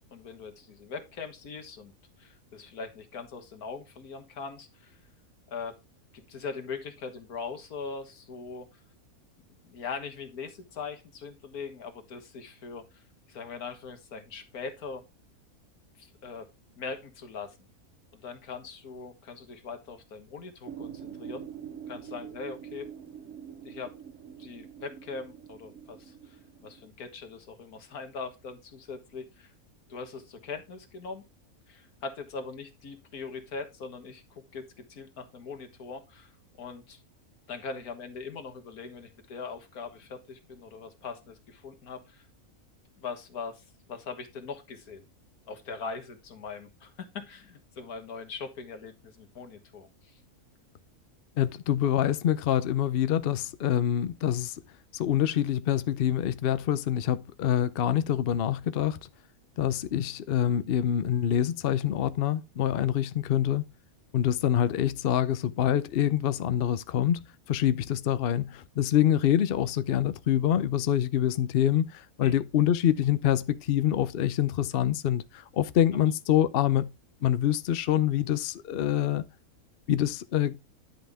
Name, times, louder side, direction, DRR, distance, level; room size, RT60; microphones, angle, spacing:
voice 1, 0.1-1.9 2.2-5.0 5.5-5.8 6.1-8.8 9.6-13.0 13.3-15.0 16.0-16.5 16.8-17.6 18.1-21.5 21.9-22.9 23.6-24.0 24.4-29.5 29.9-31.2 31.7-36.3 36.6-37.0 37.5-42.3 43.0-45.1 45.5-50.2 72.2-72.4, left 5 dB, 90° left, 1.9 m, -41 dB
sound 1, 20.7-26.9, right 8 dB, 65° right, 1.1 m, -44 dB
voice 2, 51.4-54.6 54.9-59.0 59.6-63.6 64.1-67.2 67.5-76.9 77.2-79.2 79.9-80.6, left 10 dB, 55° left, 0.7 m, -26 dB
10.5 x 5.6 x 3.5 m
omnidirectional pair, 1.5 m